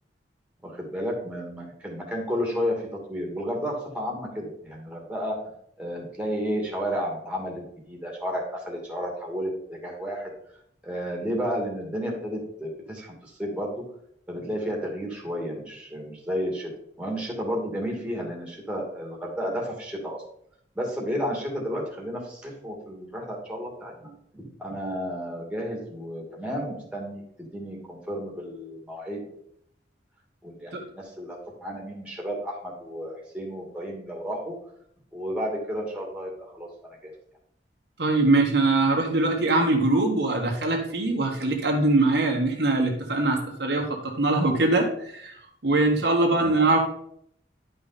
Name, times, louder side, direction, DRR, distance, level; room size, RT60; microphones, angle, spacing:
voice 1, 0.6-5.4 5.8-10.3 10.8-13.8 14.3-16.7 17.0-20.2 20.7-29.4 30.4-34.5 35.1-36.7 37.0-37.1 46.3-46.6, equal, 5° right, -1 dB, 2.4 m, -32 dB
voice 2, 38.0-45.3 45.6-46.8, right 2 dB, 65° right, 1 dB, 1.5 m, -22 dB
10.5 x 5.4 x 4.2 m, 0.69 s
head